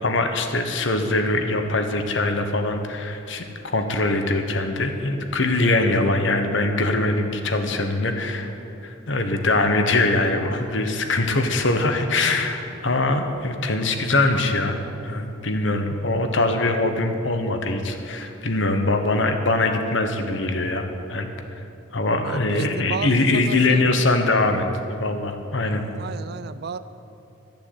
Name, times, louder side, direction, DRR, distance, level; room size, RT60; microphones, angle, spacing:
voice 1, 0.0-3.5 3.7-8.5 8.8-21.3 21.9-24.7 25.0-25.8, left 2 dB, 60° left, 6 dB, 1.1 m, -22 dB
voice 2, 22.2-24.3 25.6-26.8, right 5 dB, 50° right, 13 dB, 0.4 m, -34 dB
13.5 x 7.0 x 8.2 m, 2.7 s
head